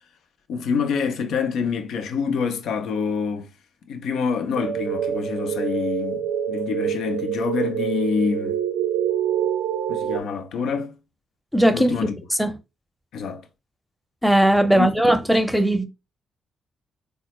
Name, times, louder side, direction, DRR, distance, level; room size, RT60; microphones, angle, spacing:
voice 1, 0.5-3.5 3.9-8.6 9.9-11.0 11.7-12.2 13.1-13.5 14.6-15.2, left 5 dB, 70° left, 0.5 m, -26 dB
sound 1, 4.5-10.2, right 9 dB, 80° right, 0.4 m, -26 dB
voice 2, 11.5-11.9 12.4-12.5 14.2-15.8, right 1 dB, ahead, 0.7 m, -18 dB
3.8 x 2.1 x 2.9 m
hypercardioid pair, 45°, 0 cm